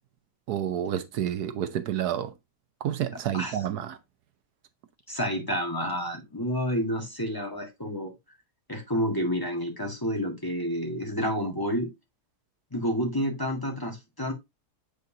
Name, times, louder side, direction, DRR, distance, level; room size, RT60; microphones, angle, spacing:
voice 1, 0.5-2.3 2.8-4.0, right 10 dB, 80° right, 1.3 m, -29 dB
voice 2, 5.1-8.1 8.7-11.9 12.7-14.3, equal, 15° left, 1.7 m, -29 dB
8.0 x 5.1 x 2.7 m
omnidirectional pair, 1.7 m